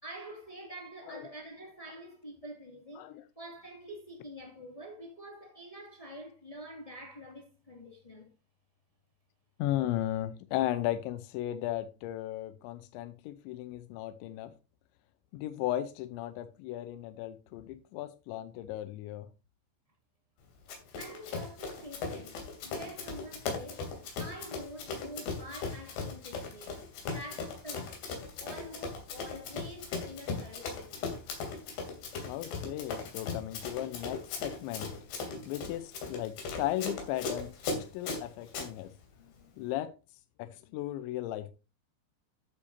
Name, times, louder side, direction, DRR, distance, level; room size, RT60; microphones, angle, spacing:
voice 1, 0.0-3.1 3.3-8.3 21.0-23.9 24.2-26.8 27.1-28.0 28.4-31.2, equal, 30° left, 0.6 m, -46 dB
voice 2, 9.6-14.5 15.3-19.3 32.2-34.9 35.5-38.9 39.6-39.9 40.4-41.6, left 13 dB, 90° left, 3.0 m, -36 dB
Run, 20.7-38.7, left 4 dB, 70° left, 4.9 m, -38 dB
13.5 x 8.2 x 2.7 m
omnidirectional pair, 5.2 m